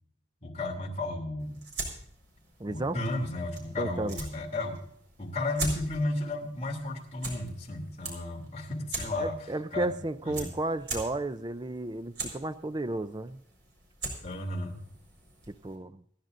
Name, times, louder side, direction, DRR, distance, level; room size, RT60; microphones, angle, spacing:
voice 1, 0.4-1.6 2.7-4.8 5.2-9.4 9.7-10.0 10.2-10.5 14.2-14.8, left 2 dB, 35° left, 0 dB, 2.9 m, -33 dB
sound 1, 1.4-15.8, right 2 dB, 60° right, 4.6 m, -42 dB
voice 2, 2.6-3.0 3.8-4.2 9.2-13.4 15.5-16.0, right 2 dB, 20° right, 12 dB, 0.4 m, -33 dB
27.5 x 10.5 x 2.6 m, 0.66 s
head